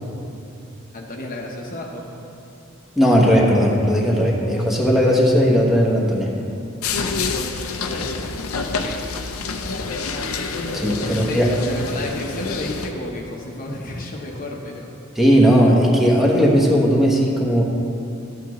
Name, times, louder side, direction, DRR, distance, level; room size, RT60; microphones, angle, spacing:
voice 1, 0.9-2.2 8.7-9.0 11.0-14.9, left 1 dB, 40° left, 0 dB, 0.9 m, -32 dB
voice 2, 3.0-6.3 10.7-11.5 15.2-17.6, equal, ahead, -3 dB, 1.0 m, -17 dB
sound 1, 6.8-12.9, left 4 dB, 80° left, 0.6 m, -27 dB
12.5 x 8.4 x 3.1 m, 2.7 s
head